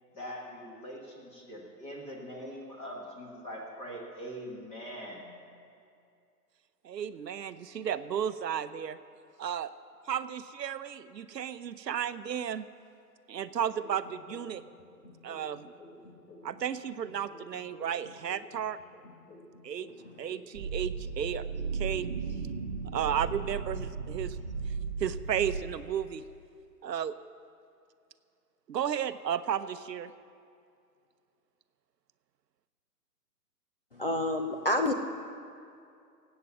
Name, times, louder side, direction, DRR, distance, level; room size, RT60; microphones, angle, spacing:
voice 1, 0.1-5.3, equal, 10° left, -1 dB, 1.4 m, -42 dB
voice 2, 6.8-9.0 9.4-9.7 10.1-12.6 13.3-14.6 15.2-15.7 16.4-18.8 19.6-19.9 20.2-21.5 21.7-22.1 22.8-24.4 25.0-26.2 26.8-27.2 28.7-30.1, right 9 dB, 80° right, 12 dB, 0.8 m, -33 dB
sound 1, 13.8-16.7 17.0-20.7 21.0-21.7, left 2 dB, 80° left, 3.1 m, -52 dB
sound 2, 20.5-25.6, right 5 dB, 20° right, 0.9 m, -35 dB
voice 3, 33.9-34.9, left 1 dB, 35° left, 4 dB, 0.5 m, -28 dB
18.5 x 8.4 x 7.1 m, 2.4 s
hypercardioid pair, 160°, 50 cm